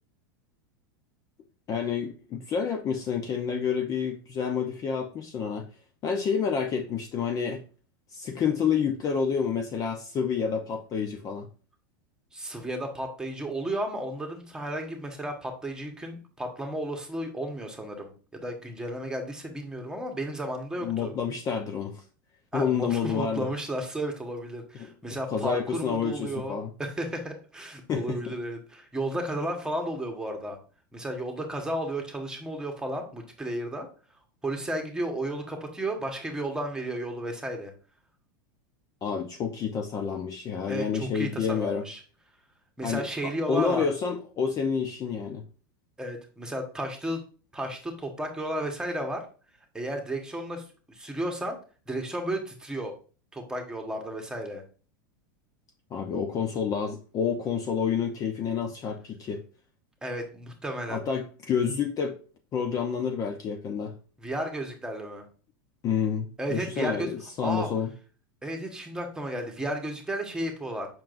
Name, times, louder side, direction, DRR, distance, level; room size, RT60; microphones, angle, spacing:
voice 1, 1.7-5.7 6.0-7.6 8.1-11.5 20.8-22.0 22.5-23.5 24.8-24.9 25.3-26.7 27.9-28.3 39.0-41.9 42.8-45.4 55.9-59.4 60.9-62.2 62.5-63.9 65.8-67.9, left 6 dB, 30° left, 4 dB, 0.7 m, -29 dB
voice 2, 12.3-21.1 22.5-30.6 30.9-33.9 34.4-37.7 40.7-42.0 42.8-43.9 46.0-47.2 47.5-49.2 49.7-51.6 51.9-52.9 53.3-54.6 60.0-61.0 64.2-65.2 66.4-67.1 67.4-67.7 68.4-70.9, right 1 dB, 5° right, 3 dB, 1.4 m, -33 dB
7.3 x 6.0 x 2.6 m, 0.38 s
supercardioid pair, 125°, 11 cm